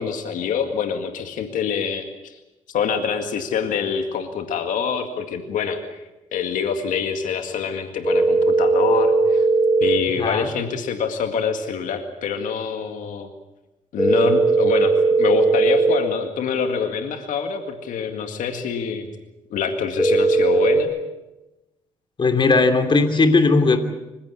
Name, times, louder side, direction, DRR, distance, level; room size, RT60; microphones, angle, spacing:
voice 1, 0.0-2.4 2.7-6.0 6.3-9.5 9.8-13.3 13.9-19.1 19.5-20.9, left 6 dB, 80° left, 6 dB, 2.1 m, -26 dB
sound 1, 8.0-10.0 14.0-16.0 20.0-20.8, right 3 dB, 5° right, 6.8 m, -18 dB
voice 2, 22.2-23.8, left 3 dB, 35° left, 7 dB, 3.0 m, -17 dB
26.5 x 16.0 x 8.6 m, 1.0 s
cardioid pair, 90°, 13 cm